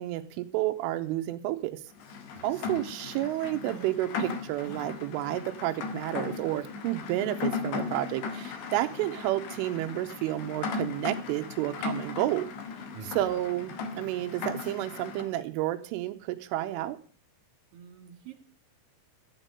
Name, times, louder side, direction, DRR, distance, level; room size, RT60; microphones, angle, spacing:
voice 1, 0.0-1.8 2.4-12.5 13.0-17.0, right 15 dB, 90° right, 7 dB, 3.4 m, -31 dB
Rain, 2.0-15.3, left 4 dB, 65° left, 3.4 m, -37 dB
voice 2, 2.3-2.8 12.9-13.3 17.7-18.3, right 7 dB, 50° right, 4 dB, 4.1 m, -47 dB
sound 1, 3.7-4.4 4.6-4.9 5.2-5.4 6.1-6.3 7.2-7.5, right 1 dB, 35° left, 2.2 m, -46 dB
12.5 x 9.1 x 6.7 m, 0.42 s
omnidirectional pair, 5.6 m